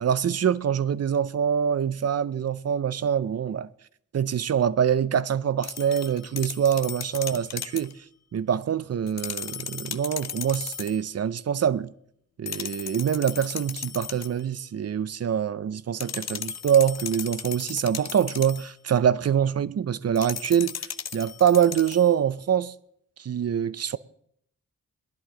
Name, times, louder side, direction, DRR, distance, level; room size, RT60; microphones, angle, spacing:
voice 1, 0.0-3.7 4.1-7.9 8.3-11.9 12.4-20.9 21.1-22.7 23.2-24.0, right 8 dB, 50° right, 0.5 m, -24 dB
sound 1, 5.6-7.9 9.1-11.0 12.5-14.4 16.0-18.7 20.2-22.1, left 8 dB, 55° left, 0.6 m, -36 dB
19.0 x 11.0 x 3.8 m
cardioid pair, 70°, 32 cm